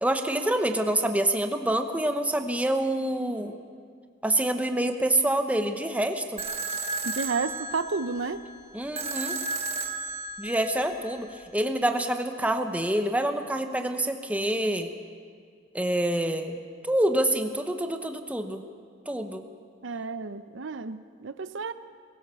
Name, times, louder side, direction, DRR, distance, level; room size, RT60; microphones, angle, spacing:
voice 1, 0.0-3.6 4.2-6.4 8.7-9.4 10.4-14.9 15.7-18.6 19.1-19.4, right 1 dB, 10° right, 6 dB, 1.0 m, -27 dB
sound 1, 6.4-11.4, right 3 dB, 35° right, 1.4 m, -34 dB
voice 2, 7.0-8.4 19.8-21.7, right 4 dB, 75° right, 12 dB, 0.7 m, -31 dB
21.0 x 18.5 x 6.9 m, 2.1 s
head